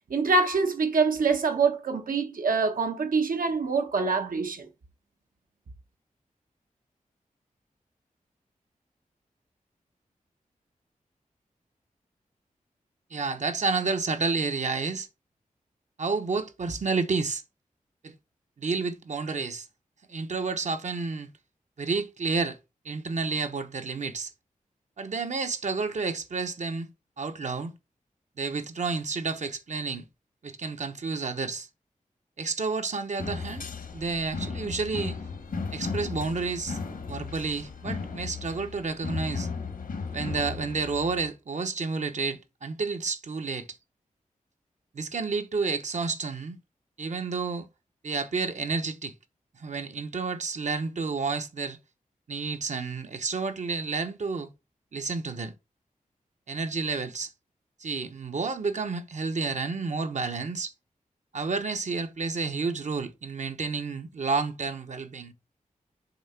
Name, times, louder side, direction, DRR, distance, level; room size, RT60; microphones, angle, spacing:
voice 1, 0.1-4.7, right 4 dB, 80° right, 1.4 m, -25 dB
voice 2, 13.1-15.1 16.0-17.4 18.0-18.1 18.6-19.7 20.1-21.3 21.8-22.6 22.8-24.3 25.0-26.9 27.2-27.7 28.4-30.0 30.4-31.7 32.4-33.7 33.9-35.2 35.7-36.8 37.1-39.5 40.1-43.7 44.9-46.6 47.0-47.7 48.0-49.1 49.6-51.8 52.3-54.5 54.9-55.5 56.5-57.3 57.8-60.7 61.3-65.3, right 4 dB, 60° right, 1.0 m, -30 dB
sound 1, 33.2-41.3, left 5 dB, 85° left, 1.5 m, -35 dB
7.1 x 3.3 x 5.9 m
wide cardioid pair, 100°, 14 cm